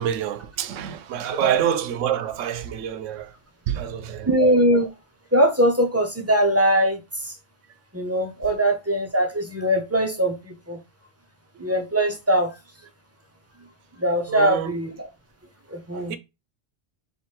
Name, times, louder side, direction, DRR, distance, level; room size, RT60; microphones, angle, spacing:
voice 1, 0.0-3.3 3.7-4.3 14.3-14.8 15.9-16.2, right 10 dB, 85° right, 0.9 m, -27 dB
voice 2, 4.3-4.9 5.3-7.0 7.2-7.3 7.9-10.8 11.6-12.5 14.0-15.1 15.7-16.1, equal, 20° right, 0.4 m, -21 dB
3.2 x 3.0 x 4.4 m
omnidirectional pair, 1.3 m